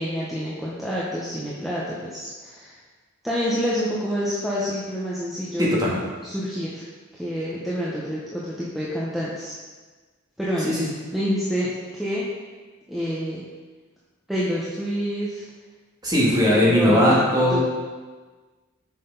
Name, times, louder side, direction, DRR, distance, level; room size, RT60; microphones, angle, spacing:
voice 1, 0.0-2.8 3.2-5.7 6.2-6.9 7.1-9.6 10.4-10.7 11.1-12.3 12.9-13.4 14.3-15.4 16.5-17.2 17.5-17.6, equal, ahead, -8 dB, 0.8 m, -27 dB
voice 2, 5.6-6.0 10.7-10.9 16.0-17.6, equal, 20° right, -6 dB, 1.7 m, -19 dB
6.1 x 5.7 x 3.9 m, 1.4 s
head